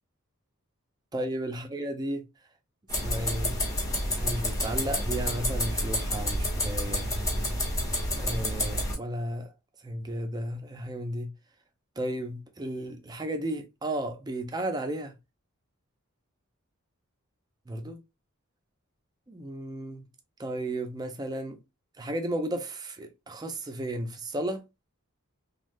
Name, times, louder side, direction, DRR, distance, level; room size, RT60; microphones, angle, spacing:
voice 1, 1.1-2.2 3.0-3.5 4.1-7.1 8.2-9.5 9.8-11.3 12.0-15.1 17.7-18.0 19.3-20.0 20.4-21.6 22.0-24.6, right 1 dB, 20° right, 0.4 m, -34 dB
sound 1, 2.9-8.9, left 1 dB, 15° left, 0.8 m, -29 dB
3.2 x 2.2 x 2.5 m
head